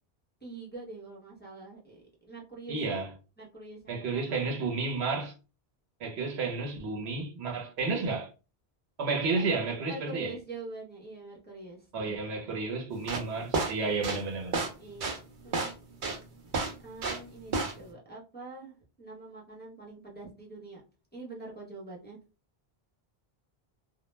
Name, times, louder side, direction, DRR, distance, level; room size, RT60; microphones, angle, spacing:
voice 1, 0.4-3.1 3.4-4.4 9.3-12.6 14.8-15.7 16.8-20.8 21.1-22.2, right 2 dB, 10° left, 0.6 m, -45 dB
voice 2, 2.7-3.1 3.9-5.3 6.0-8.3 9.0-10.3 11.9-14.6, right 4 dB, 80° right, 1.0 m, -31 dB
sound 1, 12.9-17.3 17.5-17.9, right 3 dB, 55° right, 0.7 m, -31 dB
2.2 x 2.1 x 3.1 m
omnidirectional pair, 1.1 m